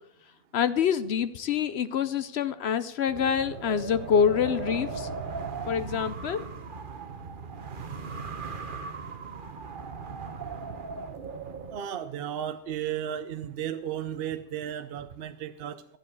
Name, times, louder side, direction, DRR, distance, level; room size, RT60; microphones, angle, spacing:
voice 1, 0.5-5.1 5.7-6.4, left 7 dB, 60° left, 13 dB, 0.7 m, -26 dB
Wind, 3.1-11.8, right 4 dB, 40° right, 1.0 m, -38 dB
voice 2, 11.7-16.0, right 10 dB, 60° right, 10 dB, 0.7 m, -34 dB
13.0 x 7.7 x 6.5 m, 0.76 s
omnidirectional pair, 1.4 m